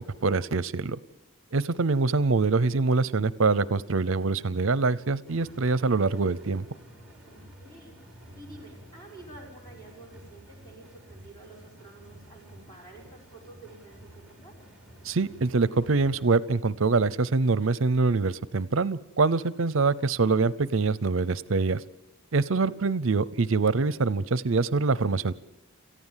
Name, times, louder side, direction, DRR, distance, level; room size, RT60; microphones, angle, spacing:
voice 1, 0.2-1.0 1.5-6.6 15.0-21.8 22.3-25.3, right 3 dB, 65° right, 18 dB, 0.7 m, -24 dB
sound 1, 5.3-16.3, equal, 5° right, 3.3 m, -50 dB
voice 2, 7.2-7.9 8.3-14.5 22.4-22.8, right 2 dB, 15° left, -2 dB, 5.9 m, -50 dB
27.5 x 15.0 x 7.4 m, 0.92 s
head